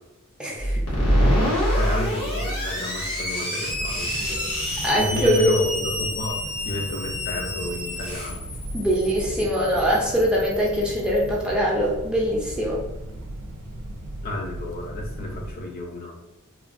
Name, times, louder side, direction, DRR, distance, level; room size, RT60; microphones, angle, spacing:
voice 1, 0.4-0.8 4.2-4.5 4.8-5.5 8.7-12.8, equal, 5° right, -4 dB, 0.4 m, -23 dB
sound 1, 0.6-3.3, right 1 dB, 70° left, 0.8 m, -24 dB
Screech, 0.9-11.3, left 1 dB, 85° left, 1.1 m, -30 dB
voice 2, 1.4-4.1 4.9-8.4 14.2-16.1, left 1 dB, 45° left, 0 dB, 0.5 m, -31 dB
sound 2, 3.7-15.5, right 1 dB, 85° right, 0.4 m, -37 dB
3.0 x 2.2 x 2.5 m, 0.93 s
head